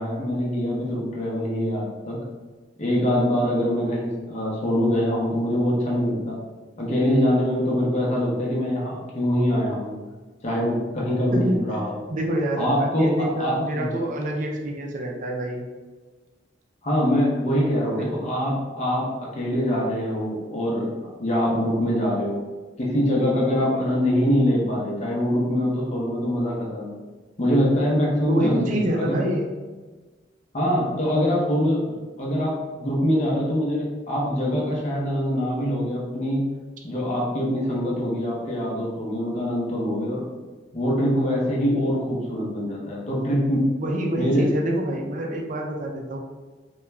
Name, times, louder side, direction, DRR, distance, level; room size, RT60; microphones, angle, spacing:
voice 1, 0.0-2.2 2.8-6.4 6.8-10.0 10.4-12.0 12.6-13.9 16.8-19.1 19.3-22.4 22.8-26.9 27.4-29.2 30.5-31.8 32.2-36.5 36.8-40.2 40.7-43.7 44.2-44.5, equal, 40° left, -4 dB, 0.7 m, -24 dB
voice 2, 11.3-11.8 12.1-15.6 17.9-18.1 28.3-29.5 43.8-46.2, right 1 dB, 45° right, 1 dB, 0.4 m, -27 dB
2.3 x 2.2 x 3.1 m, 1.3 s
head